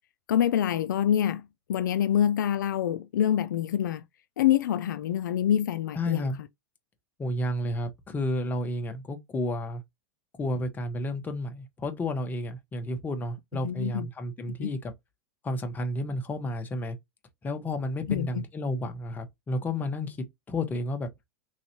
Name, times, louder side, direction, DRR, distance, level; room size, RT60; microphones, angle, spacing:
voice 1, 0.3-4.0 4.4-6.3 13.6-14.1 14.6-14.7 18.1-18.4, left 10 dB, 85° left, 0.4 m, -26 dB
voice 2, 5.9-6.4 7.2-9.8 10.4-14.9 15.4-17.0 17.4-20.2 20.5-21.1, left 1 dB, 20° left, 0.9 m, -31 dB
3.9 x 3.1 x 2.8 m
hypercardioid pair, 125°, 10 cm